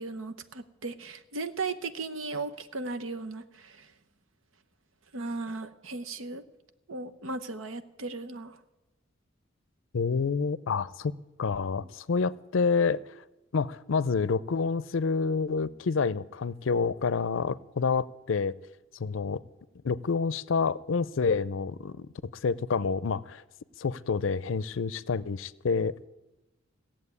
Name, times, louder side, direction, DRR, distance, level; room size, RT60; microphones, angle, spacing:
voice 1, 0.0-3.9 5.1-6.4 6.9-8.6 11.8-11.9, right 3 dB, 80° right, 9 dB, 1.0 m, -36 dB
voice 2, 9.9-11.1 11.4-13.0 13.5-18.5 19.0-19.4 19.8-22.1 22.4-23.4 23.8-25.9, left 5 dB, 70° left, 19 dB, 0.5 m, -28 dB
16.5 x 7.4 x 9.7 m, 1.0 s
head